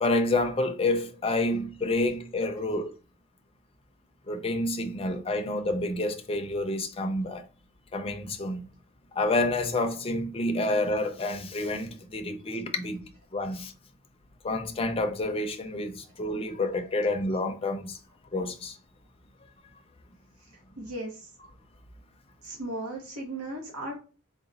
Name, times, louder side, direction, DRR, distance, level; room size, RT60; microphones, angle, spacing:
voice 1, 0.0-2.9 4.3-7.4 7.9-8.7 9.1-13.0 13.3-13.7 14.4-18.0 18.3-18.8, left 2 dB, 25° left, 0.5 m, -28 dB
voice 2, 20.8-21.3 22.4-24.0, right 1 dB, 85° right, 1.0 m, -36 dB
3.9 x 2.2 x 3.9 m
head